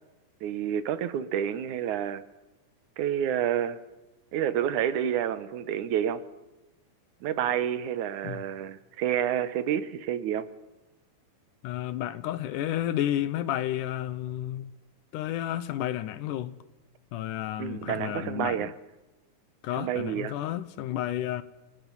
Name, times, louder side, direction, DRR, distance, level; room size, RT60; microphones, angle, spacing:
voice 1, 0.4-2.2 3.0-3.8 4.3-6.3 7.2-10.5 17.6-18.7 19.8-20.3, right 9 dB, 75° right, 2.3 m, -29 dB
voice 2, 11.6-14.7 15.1-16.6 17.1-18.7 19.6-21.4, left 12 dB, 80° left, 2.4 m, -31 dB
28.5 x 18.0 x 5.6 m
omnidirectional pair, 3.7 m